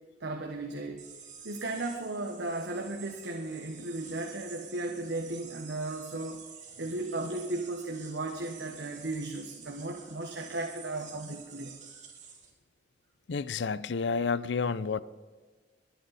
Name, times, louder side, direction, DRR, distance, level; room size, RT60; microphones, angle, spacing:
voice 1, 0.2-1.0 1.4-6.4 6.8-11.8, right 2 dB, 85° right, 1.2 m, -35 dB
sound 1, 1.0-12.5, right 6 dB, 45° right, 3.0 m, -49 dB
voice 2, 13.3-15.0, left 5 dB, 85° left, 0.5 m, -30 dB
21.5 x 9.7 x 4.2 m
head